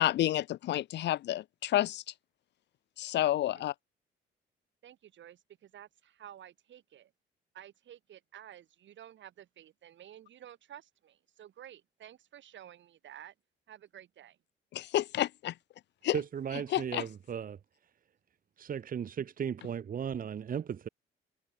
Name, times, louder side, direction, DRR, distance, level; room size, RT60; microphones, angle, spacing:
voice 1, 0.0-2.0 3.0-3.7 14.7-15.5 16.0-16.2 16.7-17.0, left 13 dB, 60° left, 0.4 m, -29 dB
voice 2, 4.8-7.1 7.5-13.3 13.7-14.4, right 11 dB, 70° right, 3.6 m, -52 dB
voice 3, 16.1-17.6 18.6-20.9, right 8 dB, 45° right, 1.0 m, -36 dB
cardioid pair, 90°, 20 cm